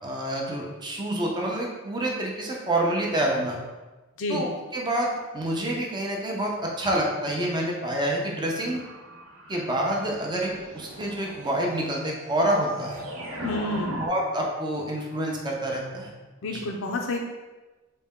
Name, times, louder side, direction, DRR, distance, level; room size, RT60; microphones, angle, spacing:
voice 1, 0.0-3.6 4.3-8.8 9.5-13.0 14.0-16.1 16.5-16.6, right 1 dB, 20° right, -1 dB, 0.6 m, -27 dB
sound 1, 8.6-14.1, equal, 85° right, 0.8 m, -39 dB
voice 2, 13.4-14.0 16.4-17.2, left 2 dB, 70° left, 1 dB, 0.4 m, -29 dB
4.1 x 2.2 x 3.5 m, 1.2 s
head